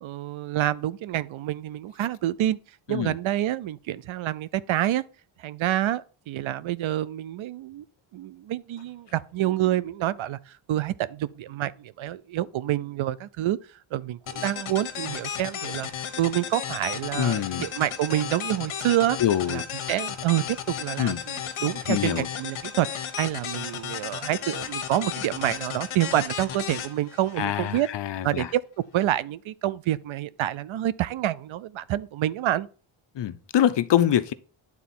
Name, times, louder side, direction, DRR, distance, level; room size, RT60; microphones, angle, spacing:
voice 1, 0.0-2.6 2.9-5.0 5.4-7.8 8.1-13.6 13.9-15.9 16.2-19.2 19.5-19.6 19.9-27.9 28.2-28.6 28.9-32.7, right 13 dB, 70° right, 0.6 m, -27 dB
sound 1, 14.3-27.9, left 8 dB, 75° left, 1.1 m, -34 dB
voice 2, 17.1-17.7 19.2-19.6 21.0-21.2 21.9-22.3 27.4-28.5 33.1-34.3, left 11 dB, 55° left, 0.6 m, -24 dB
9.7 x 4.0 x 4.3 m
cardioid pair, 100°, 50 cm